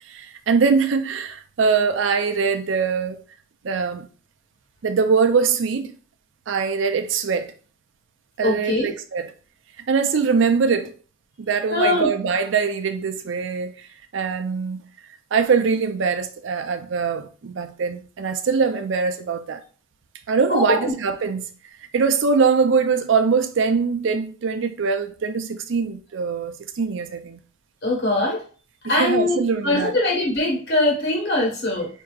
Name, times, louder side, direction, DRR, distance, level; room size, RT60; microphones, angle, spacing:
voice 1, 0.1-3.2 3.6-4.1 4.8-5.9 6.5-7.5 8.4-9.3 9.9-10.9 11.4-13.7 14.1-14.8 15.3-19.6 20.3-21.5 21.9-27.4 28.8-30.0, right 5 dB, 65° right, 0.4 m, -22 dB
voice 2, 8.4-8.9 11.7-12.1 20.5-20.9 27.8-28.4 28.9-29.4 29.6-31.9, left 2 dB, 55° left, 1.4 m, -21 dB
4.6 x 2.7 x 2.4 m
head